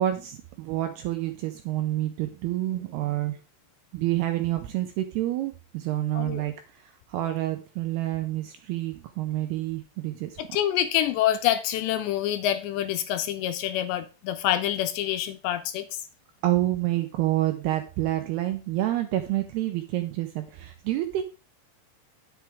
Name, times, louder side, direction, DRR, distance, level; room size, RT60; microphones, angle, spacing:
voice 1, 0.0-3.4 3.9-10.4 16.4-21.2, right 14 dB, 80° right, 2.4 m, -28 dB
voice 2, 6.1-6.4 10.5-15.9, left 11 dB, 80° left, 2.7 m, -26 dB
10.5 x 8.0 x 3.6 m
omnidirectional pair, 5.4 m